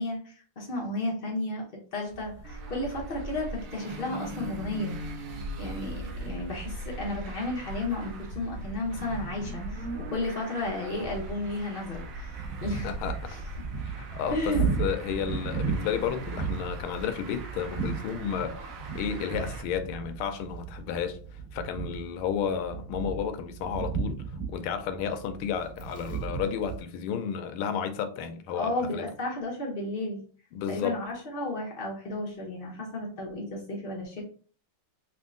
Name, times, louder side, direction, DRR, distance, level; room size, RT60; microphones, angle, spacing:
voice 1, 0.0-1.6 1.9-4.9 5.6-12.9 13.3-13.4 14.3-14.6 28.5-30.2 30.7-34.2, left 2 dB, 65° left, 0.5 m, -33 dB
sound 1, 2.1-18.8, right 1 dB, 45° right, 0.7 m, -43 dB
Traffic noise roadway noise, 2.4-19.6, right 1 dB, 90° right, 0.7 m, -42 dB
sound 2, 11.9-26.8, right 6 dB, 20° right, 0.9 m, -35 dB
voice 2, 12.8-13.3 13.8-29.0 30.5-31.0, left 7 dB, 85° left, 1.4 m, -32 dB
3.6 x 2.5 x 3.6 m
omnidirectional pair, 2.3 m